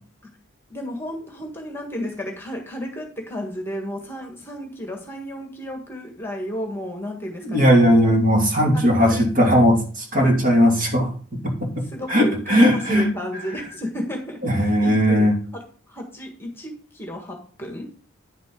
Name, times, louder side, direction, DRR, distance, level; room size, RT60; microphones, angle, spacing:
voice 1, 0.7-8.2 8.7-9.7 11.8-17.9, equal, 10° left, 2 dB, 1.5 m, -33 dB
voice 2, 7.4-11.1 11.4-13.1 14.4-15.4, equal, 40° right, 0 dB, 2.6 m, -18 dB
9.8 x 7.4 x 3.8 m, 0.41 s
head